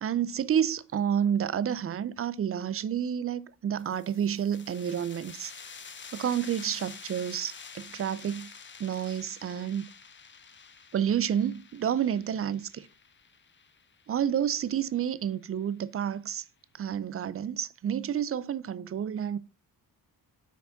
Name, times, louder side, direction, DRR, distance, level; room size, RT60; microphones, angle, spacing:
voice 1, 0.0-5.5 6.1-8.5 8.8-9.8 10.9-12.9 14.1-16.4 16.8-19.4, right 9 dB, 35° right, 0.4 m, -30 dB
sound 1, 3.8-15.1, left 6 dB, 30° left, 0.6 m, -48 dB
6.0 x 4.9 x 3.9 m
cardioid pair, 105°, 39 cm